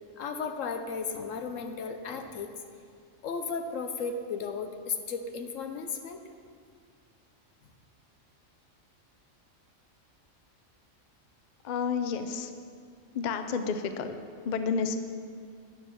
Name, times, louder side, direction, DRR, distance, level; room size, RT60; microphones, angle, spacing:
voice 1, 0.2-2.5 3.2-6.2, left 5 dB, 85° left, 6 dB, 1.2 m, -35 dB
voice 2, 11.6-12.5 13.1-14.1 14.4-15.0, left 5 dB, 50° left, 8 dB, 0.6 m, -30 dB
9.7 x 7.2 x 5.8 m, 2.2 s
omnidirectional pair, 1.3 m